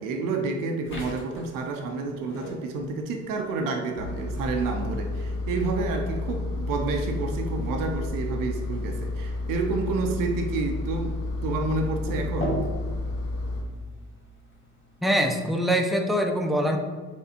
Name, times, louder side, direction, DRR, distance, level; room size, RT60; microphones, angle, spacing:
voice 1, 0.0-12.5, right 3 dB, 60° right, 4 dB, 0.5 m, -29 dB
sound 1, 0.8-15.6, equal, 30° left, 1.0 m, -41 dB
Engine, 4.0-13.6, left 2 dB, 75° left, 0.6 m, -31 dB
voice 2, 15.0-16.8, equal, ahead, 3 dB, 0.4 m, -23 dB
4.2 x 2.4 x 2.7 m, 1.5 s
hypercardioid pair, 50°, 37 cm